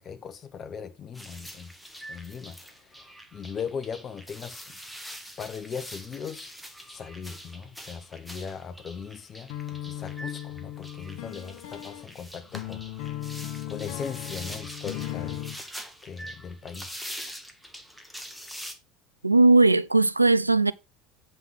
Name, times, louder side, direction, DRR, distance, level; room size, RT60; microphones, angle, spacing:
voice 1, 0.0-1.7 2.1-4.8 5.4-6.5 6.9-9.5 9.8-13.1 13.7-15.4 16.0-17.1, left 6 dB, 35° left, 1.0 m, -39 dB
sound 1, 1.1-18.7, equal, ahead, 1.6 m, -44 dB
sound 2, 9.5-15.6, left 13 dB, 55° left, 1.1 m, -37 dB
voice 2, 19.2-20.7, right 2 dB, 90° right, 0.4 m, -18 dB
8.2 x 5.7 x 4.3 m
figure-of-eight pair, 70°, 0 cm